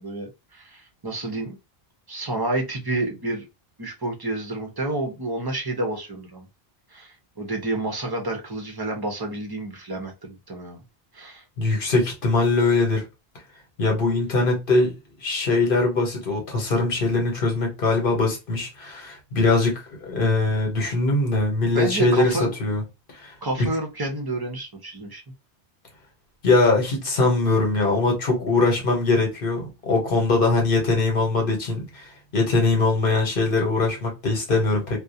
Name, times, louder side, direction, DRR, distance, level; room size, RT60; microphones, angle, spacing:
voice 1, 0.0-1.6 2.1-3.4 3.8-6.4 6.9-10.8 11.1-11.4 21.7-22.5 23.4-25.2, right 2 dB, 35° right, 0.4 m, -29 dB
voice 2, 11.6-13.0 13.8-14.9 15.2-19.8 20.1-22.8 23.2-23.7 26.4-32.1 32.3-35.0, left 3 dB, 60° left, 1.0 m, -22 dB
2.4 x 2.0 x 2.6 m
omnidirectional pair, 1.0 m